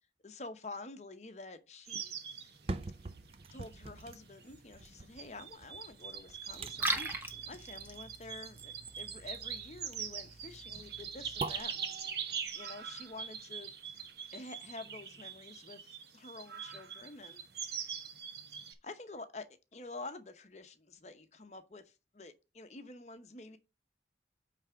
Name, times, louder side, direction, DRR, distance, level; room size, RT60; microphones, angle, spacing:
voice 1, 0.2-2.2 2.4-2.5 3.5-13.7 14.3-18.0 18.8-19.5 19.7-23.6, left 3 dB, 40° left, 0.9 m, -49 dB
sound 1, 1.9-18.7, right 7 dB, 70° right, 1.1 m, -43 dB
sound 2, 2.4-14.4 14.9-15.0, right 3 dB, 35° right, 0.5 m, -46 dB
Liquid, 6.6-11.6, right 2 dB, 10° right, 0.9 m, -41 dB
8.7 x 3.4 x 5.7 m
head